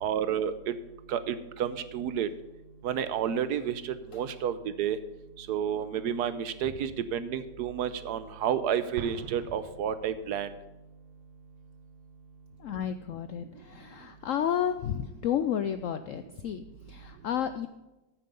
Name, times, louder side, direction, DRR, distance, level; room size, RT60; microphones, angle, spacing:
voice 1, 0.0-0.5 1.1-2.3 2.8-5.0 5.4-10.5, right 8 dB, 70° right, 13 dB, 1.2 m, -30 dB
Explosion, 9.0-10.6, right 7 dB, 85° right, 1.5 m, -44 dB
voice 2, 12.6-17.7, left 9 dB, 75° left, 10 dB, 0.7 m, -32 dB
9.3 x 9.2 x 5.3 m, 1.0 s
omnidirectional pair, 1.9 m